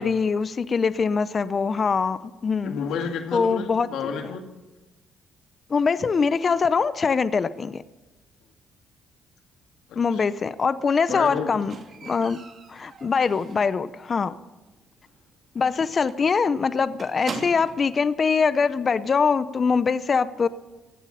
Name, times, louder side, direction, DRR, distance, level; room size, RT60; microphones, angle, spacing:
voice 1, 0.0-2.8 3.3-3.9 5.7-7.8 10.0-11.7 12.0-12.4 12.7-14.3 15.5-20.5, left 5 dB, 40° left, 15 dB, 0.6 m, -23 dB
voice 2, 2.6-4.5 9.9-10.2 11.1-11.5 15.6-15.7, left 6 dB, 80° left, 5 dB, 2.0 m, -30 dB
Squeak, 11.1-13.9 14.2-14.6 14.9-15.0 15.3-15.4 15.7-15.8 16.1-17.9 18.8-18.9, right 4 dB, 50° right, 2.5 m, -40 dB
15.5 x 8.3 x 9.9 m, 1.1 s
cardioid pair, 95°, 0 cm